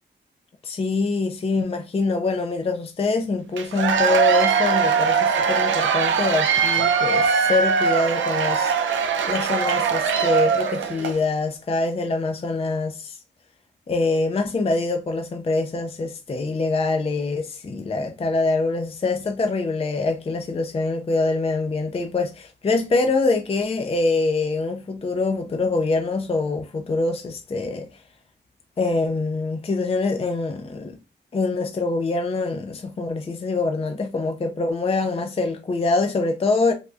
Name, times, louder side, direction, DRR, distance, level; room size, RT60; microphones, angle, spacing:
voice 1, 0.6-8.9 9.3-13.2 13.9-28.0 28.8-31.0 31.3-36.7, left 3 dB, 30° left, 0.4 m, -24 dB
Cheering / Applause / Crowd, 3.6-11.2, right 6 dB, 90° right, 0.4 m, -21 dB
3.4 x 2.2 x 2.4 m
cardioid pair, 75°, 19 cm